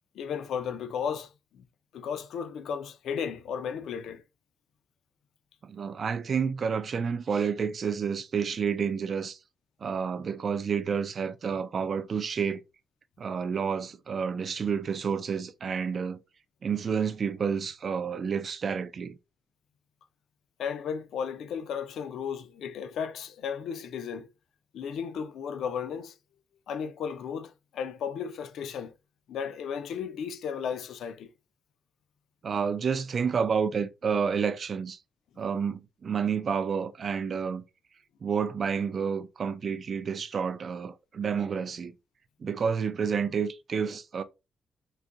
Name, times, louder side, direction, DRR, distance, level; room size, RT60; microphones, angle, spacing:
voice 1, 0.1-1.6 1.9-4.2 20.6-24.3 24.7-26.1 26.7-28.9 29.3-31.3, left 7 dB, 85° left, 0.4 m, -34 dB
voice 2, 5.6-9.4 9.8-12.6 13.2-16.2 16.6-19.2 32.4-35.0 35.4-37.6 38.2-41.9 42.4-44.2, right 6 dB, 40° right, 0.3 m, -29 dB
3.9 x 2.6 x 2.4 m
wide cardioid pair, 170°, 0 cm